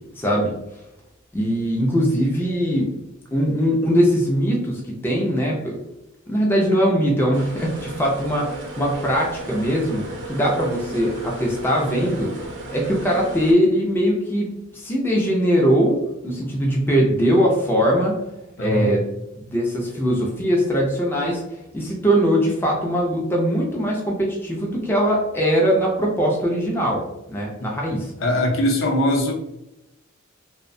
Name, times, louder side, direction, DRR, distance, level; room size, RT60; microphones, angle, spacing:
voice 1, 0.2-0.5 1.3-2.9 3.3-5.8 6.3-12.3 12.7-18.2 18.6-19.0 19.4-21.4 21.7-27.0 27.3-28.1, equal, 10° left, -2 dB, 0.3 m, -21 dB
sound 1, 7.3-13.5, right 2 dB, 55° right, 0.5 m, -35 dB
voice 2, 18.6-18.9 28.2-29.3, left 1 dB, 65° left, 1 dB, 0.6 m, -21 dB
2.6 x 2.1 x 2.5 m, 0.90 s
head